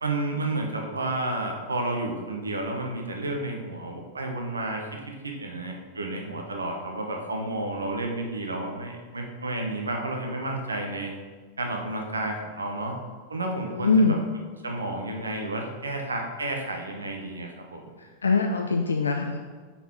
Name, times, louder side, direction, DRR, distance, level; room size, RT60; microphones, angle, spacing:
voice 1, 0.0-11.1 11.6-13.0 13.3-14.2 14.6-17.9, right 2 dB, 75° right, 2 dB, 0.7 m, -31 dB
voice 2, 13.7-14.2 18.0-19.4, left 3 dB, 75° left, 3 dB, 0.3 m, -23 dB
5.6 x 4.2 x 4.4 m, 1.4 s
figure-of-eight pair, 90°, 0 cm